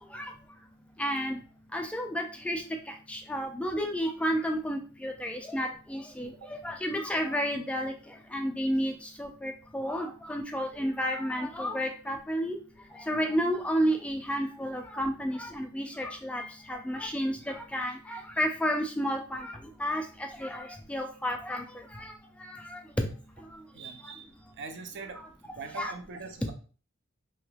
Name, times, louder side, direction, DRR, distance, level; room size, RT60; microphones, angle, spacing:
voice 1, 1.0-1.4 1.7-2.6 3.1-7.9 8.3-8.9 9.2-12.6 13.1-20.0 20.4-21.6 22.4-23.1 25.8-25.9, equal, 5° left, 3 dB, 0.3 m, -31 dB
voice 2, 23.7-24.3 24.6-25.2 25.6-26.5, right 4 dB, 55° right, 6 dB, 0.5 m, -42 dB
3.2 x 2.8 x 2.2 m, 0.37 s
head